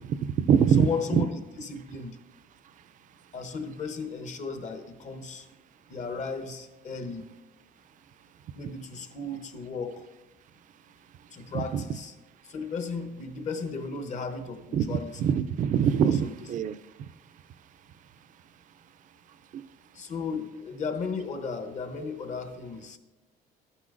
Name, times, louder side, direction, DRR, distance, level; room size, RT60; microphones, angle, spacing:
voice 1, 0.1-0.9 1.1-1.2 11.7-11.8 14.7-16.8, right 8 dB, 50° right, 13 dB, 0.4 m, -23 dB
voice 2, 0.8-2.2 3.3-5.5 5.9-7.3 8.5-10.1 11.3-12.1 12.4-15.1 16.0-16.4 19.9-23.0, left 4 dB, 45° left, 7 dB, 1.0 m, -35 dB
12.0 x 9.8 x 2.5 m, 1.1 s
cardioid pair, 110°, 17 cm